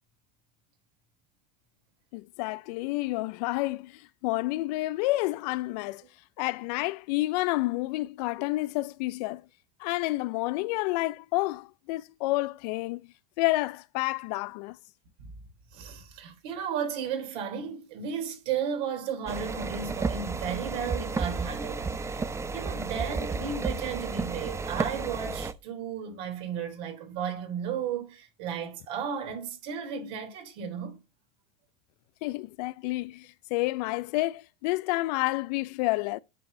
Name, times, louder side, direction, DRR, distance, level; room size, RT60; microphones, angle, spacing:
voice 1, 2.1-6.0 6.4-9.4 9.8-14.8 32.2-36.2, left 20 dB, 75° left, 0.4 m, -29 dB
voice 2, 15.7-31.0, right 7 dB, 75° right, 3.4 m, -34 dB
sound 1, 19.3-25.5, right 4 dB, 15° right, 0.5 m, -32 dB
8.4 x 5.4 x 2.6 m
supercardioid pair, 110°, 21 cm